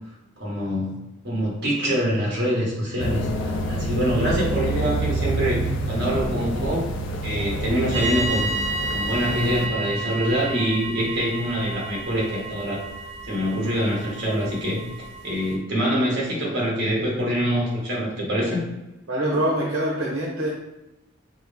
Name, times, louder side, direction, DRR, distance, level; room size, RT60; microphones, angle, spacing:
voice 1, 0.4-0.9 1.2-6.9 7.2-8.5 8.9-12.8 13.2-14.8 15.2-18.6, equal, 50° right, -4 dB, 1.5 m, -25 dB
sound 1, 3.0-9.7, right 1 dB, 60° left, 0.4 m, -27 dB
sound 2, 7.9-15.6, right 2 dB, 30° right, 0.6 m, -31 dB
voice 2, 19.1-20.5, right 1 dB, 80° right, -3 dB, 0.9 m, -24 dB
6.1 x 2.1 x 3.5 m, 0.98 s
head